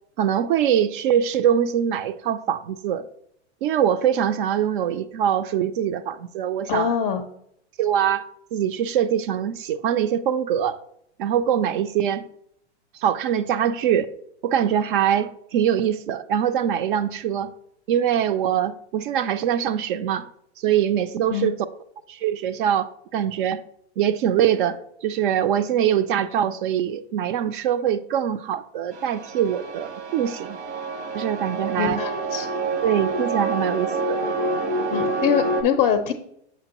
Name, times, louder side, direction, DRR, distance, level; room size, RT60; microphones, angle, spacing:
voice 1, 0.2-3.0 3.6-6.9 7.8-8.2 8.5-10.8 11.2-12.2 13.0-14.1 14.4-17.5 17.9-20.3 20.6-21.6 22.1-23.6 24.0-30.6 31.1-32.0 32.8-34.2, right 9 dB, 50° right, 0.4 m, -23 dB
voice 2, 6.7-7.2 21.3-21.5 31.8-32.5 34.9-36.1, left 8 dB, 25° left, 0.5 m, -23 dB
sound 1, 28.9-35.6, right 2 dB, 90° right, 1.2 m, -27 dB
7.0 x 5.1 x 2.9 m
hypercardioid pair, 120°, 33 cm